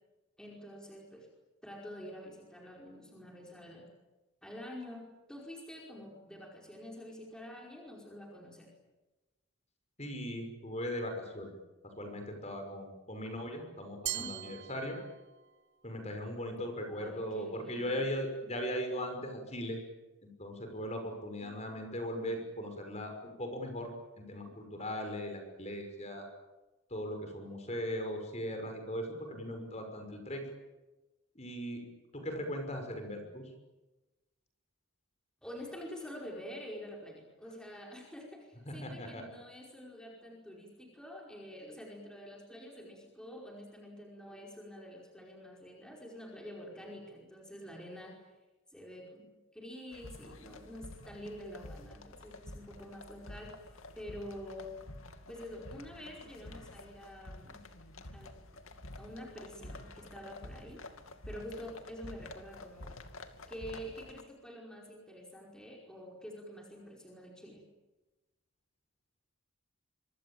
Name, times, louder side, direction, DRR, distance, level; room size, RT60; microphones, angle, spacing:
voice 1, 0.4-1.3 1.6-3.9 4.4-8.7 14.1-14.4 16.8-18.1 35.4-48.3 48.7-53.5 53.9-54.7 55.3-57.6 58.1-58.3 59.0-60.8 61.2-63.0 63.5-67.6, equal, 5° left, -1 dB, 5.1 m, -47 dB
voice 2, 10.0-11.5 12.0-15.0 15.8-19.8 20.2-23.9 24.2-26.3 26.9-30.4 31.4-31.8 32.1-33.4 38.7-39.2, equal, 30° left, 5 dB, 6.0 m, -38 dB
Glass, 14.1-15.5, right 13 dB, 55° right, 1.8 m, -40 dB
sound 1, 49.9-64.2, left 1 dB, 80° left, 2.6 m, -49 dB
26.0 x 24.5 x 8.9 m, 1.1 s
head